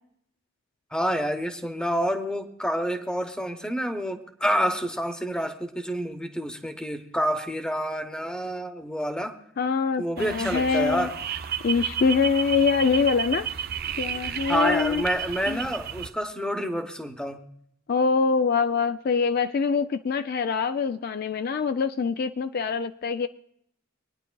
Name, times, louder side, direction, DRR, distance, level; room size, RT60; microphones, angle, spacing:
voice 1, 0.9-9.3 10.0-11.1 14.2-17.4, equal, 5° left, 7 dB, 0.8 m, -28 dB
voice 2, 9.6-11.1 11.6-13.5 14.0-15.0 15.5-15.6 17.9-23.3, left 5 dB, 50° left, 10 dB, 0.4 m, -24 dB
sound 1, 10.2-16.1, right 8 dB, 50° right, 0.5 m, -32 dB
25.0 x 9.8 x 2.3 m, 0.70 s
head